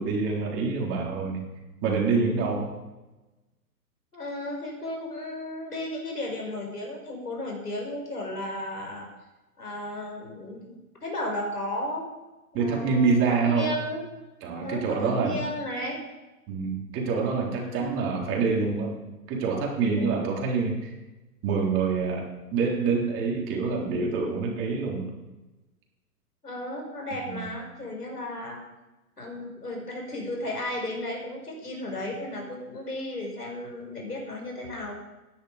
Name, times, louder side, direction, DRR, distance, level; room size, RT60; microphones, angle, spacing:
voice 1, 0.0-1.4 1.8-2.8 12.5-13.7 14.4-15.4 16.5-19.0 19.3-20.9 21.4-25.1 27.2-27.5, right 4 dB, 25° right, -1 dB, 4.0 m, -26 dB
voice 2, 4.1-9.1 9.6-12.1 12.5-14.1 14.6-16.0 17.4-17.8 20.0-20.3 26.4-28.6 29.2-35.0, left 1 dB, 85° left, 0 dB, 6.2 m, -34 dB
16.0 x 11.0 x 5.2 m, 1.1 s
figure-of-eight pair, 120°, 45 cm